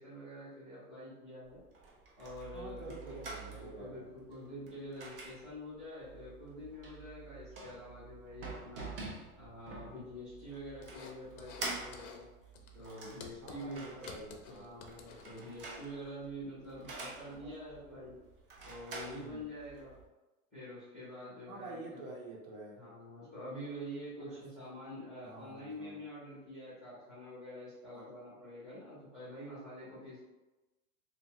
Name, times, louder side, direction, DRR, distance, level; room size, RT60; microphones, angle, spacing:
voice 1, 0.0-1.6 2.2-3.2 3.5-8.9 9.3-12.3 12.7-14.1 14.4-18.1 18.6-19.9 20.5-22.0 22.7-30.2, equal, ahead, -13 dB, 0.6 m, -46 dB
sound 1, 1.4-20.0, right 3 dB, 40° right, 0.4 m, -48 dB
voice 2, 2.5-4.0 13.4-14.7 17.4-17.5 19.0-19.4 21.5-22.8 24.2-24.4 25.2-26.0 27.9-28.1, right 2 dB, 60° right, -2 dB, 0.8 m, -48 dB
sound 2, 10.8-11.7 11.9-12.2 12.5-15.8, left 5 dB, 70° left, 0.6 m, -52 dB
2.7 x 2.3 x 2.8 m, 1.1 s
supercardioid pair, 170°, 45 cm